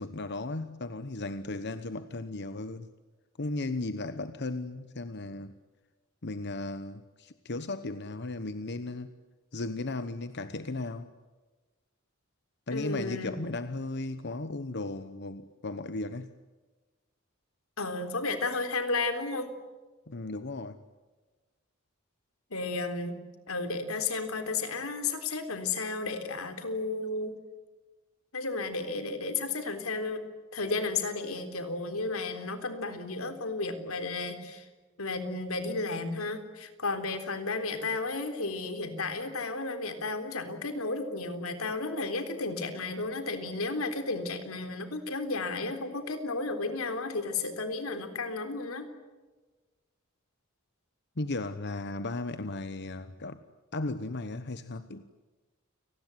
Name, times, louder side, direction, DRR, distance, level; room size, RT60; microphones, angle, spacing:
voice 1, 0.0-2.9 3.4-5.5 6.2-9.1 9.5-11.1 12.7-16.3 20.1-20.8 51.2-53.4 53.7-55.1, left 2 dB, 55° left, 11 dB, 1.1 m, -36 dB
voice 2, 12.7-13.3 17.8-19.5 22.5-23.2 23.5-27.3 28.3-30.2 30.5-34.7 35.0-48.9, left 3 dB, 90° left, 8 dB, 3.7 m, -33 dB
29.5 x 19.5 x 9.6 m, 1.3 s
head